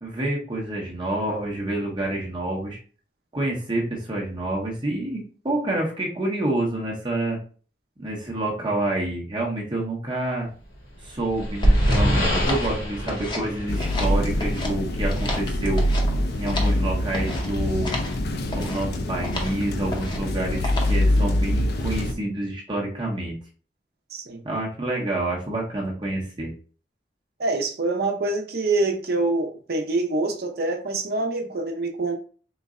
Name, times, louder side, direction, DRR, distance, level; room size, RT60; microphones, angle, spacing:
voice 1, 0.0-2.8 3.3-7.4 8.0-10.5 11.0-15.8 16.4-17.9 18.5-23.3 24.4-26.5, right 1 dB, 25° right, -2 dB, 0.8 m, -28 dB
sound 1, 10.8-14.5, equal, 90° left, 1.7 m, -23 dB
sound 2, 11.6-13.5 13.8-14.7 15.1-16.8 17.1-17.5 17.8-18.2 18.5-18.8 19.2-19.6 19.9-20.3 20.6-21.0, left 2 dB, 25° left, 0.8 m, -33 dB
sound 3, 13.7-22.1, left 1 dB, 65° left, 0.5 m, -24 dB
voice 2, 24.1-24.4 27.4-32.2, right 2 dB, 60° right, 3 dB, 0.7 m, -25 dB
3.9 x 2.1 x 3.6 m, 0.40 s
head